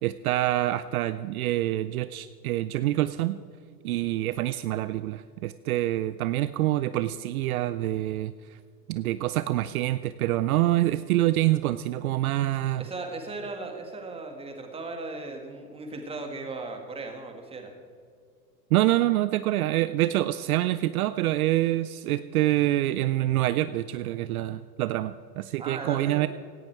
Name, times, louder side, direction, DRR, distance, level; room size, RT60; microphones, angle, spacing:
voice 1, 0.0-3.4 3.8-8.3 8.9-12.8 18.7-26.3, right 15 dB, 60° right, 14 dB, 0.6 m, -26 dB
voice 2, 12.8-17.7 25.6-26.3, right 3 dB, 10° right, 3 dB, 1.9 m, -37 dB
17.5 x 11.5 x 4.7 m, 2.2 s
hypercardioid pair, 135°, 49 cm